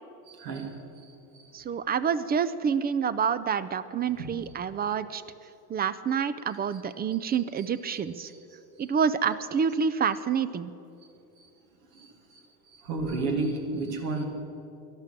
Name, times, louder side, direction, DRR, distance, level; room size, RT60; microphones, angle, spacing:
voice 1, 1.5-5.2 5.7-8.3 8.8-10.7, right 7 dB, 20° right, 15 dB, 0.3 m, -28 dB
voice 2, 12.9-14.3, right 3 dB, 85° right, 2 dB, 2.5 m, -30 dB
13.5 x 11.5 x 7.5 m, 2.8 s
supercardioid pair, 90°, 49 cm